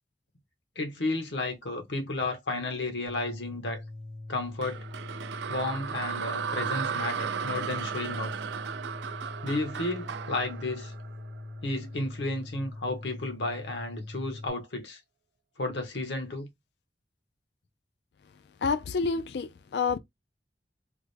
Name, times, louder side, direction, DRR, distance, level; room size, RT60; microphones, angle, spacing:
voice 1, 0.8-3.8 4.3-4.8 5.5-8.3 9.4-10.9 11.6-15.0 15.6-16.5, left 2 dB, 90° left, 1.1 m, -32 dB
sound 1, 3.1-14.5, left 2 dB, 40° left, 1.0 m, -42 dB
sound 2, 4.6-11.8, right 7 dB, 80° right, 0.3 m, -35 dB
voice 2, 18.6-20.0, left 5 dB, 65° left, 0.4 m, -28 dB
3.6 x 2.1 x 3.2 m
head